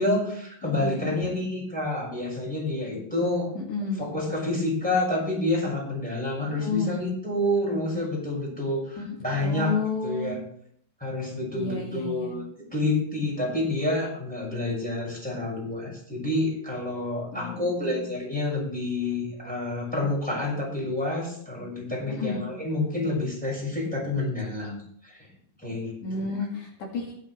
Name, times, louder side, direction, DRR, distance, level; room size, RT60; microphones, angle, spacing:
voice 1, 0.0-3.5 3.9-9.7 10.0-10.4 11.0-12.4 12.7-24.8 25.0-25.3 25.6-26.2, left 2 dB, ahead, -4 dB, 6.3 m, -28 dB
voice 2, 0.6-1.3 3.6-4.0 6.6-7.1 9.0-10.3 11.5-12.3 17.3-18.1 22.1-22.4 26.0-27.1, left 4 dB, 65° left, -1 dB, 3.6 m, -31 dB
19.0 x 8.3 x 3.4 m, 0.65 s
omnidirectional pair, 4.0 m